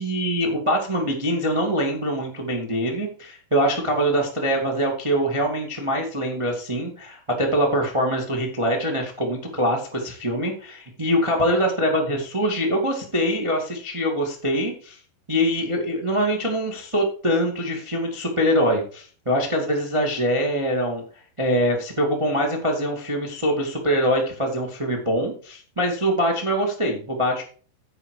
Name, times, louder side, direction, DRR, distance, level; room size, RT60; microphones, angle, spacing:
voice 1, 0.0-15.0 15.3-21.0 21.4-27.4, equal, 20° right, 0 dB, 0.8 m, -23 dB
10.0 x 7.8 x 4.8 m, 0.42 s
omnidirectional pair, 4.8 m